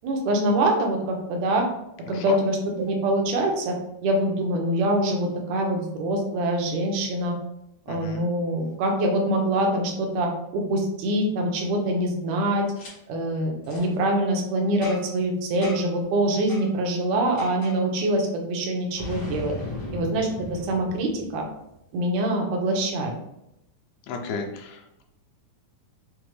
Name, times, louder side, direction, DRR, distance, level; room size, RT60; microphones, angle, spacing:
voice 1, 0.0-1.6 2.1-3.8 4.0-7.3 7.9-12.6 13.1-19.5 19.9-21.4 21.9-23.1, right 1 dB, 80° right, 1 dB, 1.7 m, -24 dB
voice 2, 7.9-8.3 24.1-25.0, left 4 dB, 80° left, 3 dB, 2.2 m, -34 dB
Boom, 12.8-12.9 13.6-13.9 14.8-15.2 15.6-16.0 16.5-16.7 17.4-17.8 19.0-21.7, left 2 dB, 55° left, 1.2 m, -37 dB
5.9 x 2.1 x 3.1 m, 0.83 s
omnidirectional pair, 4.0 m